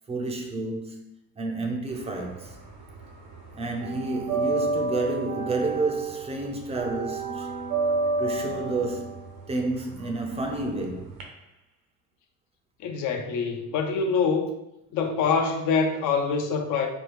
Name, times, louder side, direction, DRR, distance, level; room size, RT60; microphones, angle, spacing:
voice 1, 0.1-1.0 1.4-2.6 3.6-7.5 8.2-11.1, right 2 dB, 20° right, 0.5 m, -30 dB
sound 1, 1.9-3.1 3.3-11.2, right 3 dB, 75° right, 0.9 m, -30 dB
voice 2, 12.8-14.5 14.9-16.9, left 5 dB, 55° left, 0.7 m, -25 dB
4.5 x 2.3 x 3.3 m
cardioid pair, 130°, 35 cm